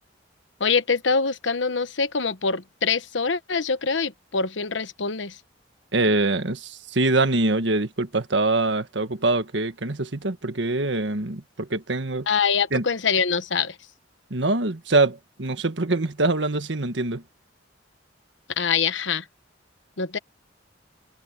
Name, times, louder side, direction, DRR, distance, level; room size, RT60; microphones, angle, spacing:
voice 1, 0.6-5.4 12.3-13.8 18.6-19.2 20.0-20.2, left 5 dB, 80° left, 1.1 m, -24 dB
voice 2, 5.9-12.3 12.7-12.8 14.3-17.2, right 2 dB, 75° right, 1.5 m, -24 dB
head